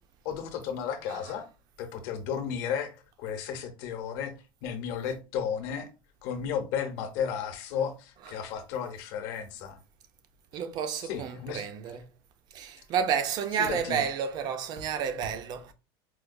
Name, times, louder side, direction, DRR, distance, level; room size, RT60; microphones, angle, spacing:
voice 1, 0.2-1.5 1.8-4.3 4.6-5.9 6.2-9.8 11.0-11.6 13.5-14.0, left 8 dB, 60° left, 0.8 m, -33 dB
voice 2, 10.5-12.0 12.5-15.7, right 7 dB, 35° right, 0.4 m, -31 dB
4.4 x 2.2 x 2.5 m
cardioid pair, 165°, 12 cm